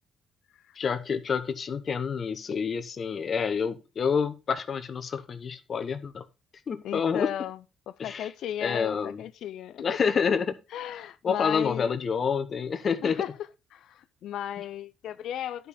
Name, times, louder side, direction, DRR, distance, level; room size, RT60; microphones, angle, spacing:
voice 1, 0.8-6.2 6.7-7.3 8.0-8.3 8.6-9.2 9.8-10.5 11.2-13.2, left 6 dB, 50° left, 0.9 m, -28 dB
voice 2, 6.8-7.6 7.9-10.0 10.7-11.9 13.0-13.3 13.7-15.7, left 11 dB, 80° left, 0.5 m, -35 dB
11.0 x 5.1 x 4.1 m
cardioid pair, 90°, 0 cm